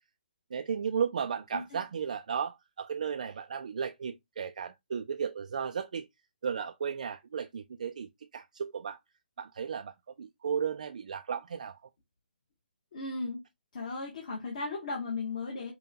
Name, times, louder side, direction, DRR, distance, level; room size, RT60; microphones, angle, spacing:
voice 1, 0.5-6.1 6.4-9.0 9.4-11.8, right 7 dB, 50° right, 0.3 m, -34 dB
voice 2, 12.9-13.4 13.7-15.7, left 3 dB, 40° left, 1.1 m, -36 dB
5.3 x 2.2 x 2.8 m
hypercardioid pair, 175°, 5 cm